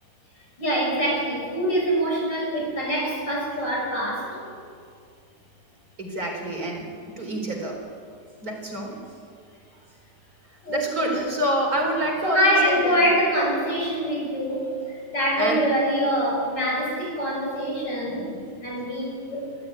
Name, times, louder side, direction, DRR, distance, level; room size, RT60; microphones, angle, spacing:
voice 1, 0.6-4.5 10.6-11.2 12.2-14.8 15.1-19.5, equal, 75° left, -1 dB, 7.1 m, -24 dB
voice 2, 6.0-7.8 8.4-9.0 10.7-13.0 15.4-15.7, right 1 dB, 55° right, 1 dB, 4.6 m, -27 dB
24.0 x 14.5 x 9.6 m, 2.3 s
omnidirectional pair, 1.9 m